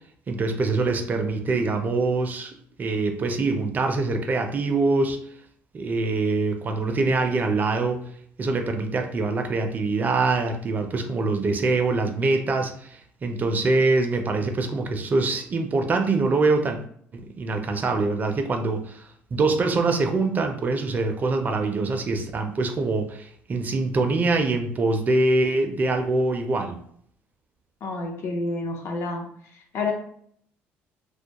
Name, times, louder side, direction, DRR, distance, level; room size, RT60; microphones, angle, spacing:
voice 1, 0.3-5.2 5.7-8.0 8.4-16.8 17.1-26.8, right 3 dB, 35° right, 5 dB, 0.4 m, -24 dB
voice 2, 27.8-29.3 29.7-29.9, left 3 dB, 60° left, 2 dB, 0.6 m, -28 dB
2.2 x 2.1 x 2.8 m, 0.63 s
cardioid pair, 95°, 5 cm